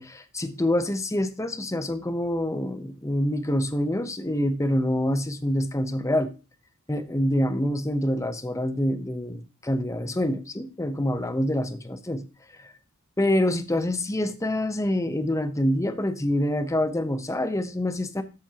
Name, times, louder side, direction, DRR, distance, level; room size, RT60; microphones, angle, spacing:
voice 1, 0.0-6.3 6.9-12.2 12.6-12.7 13.2-18.2, left 1 dB, 15° left, 0.8 m, -26 dB
13.0 x 7.9 x 2.9 m
head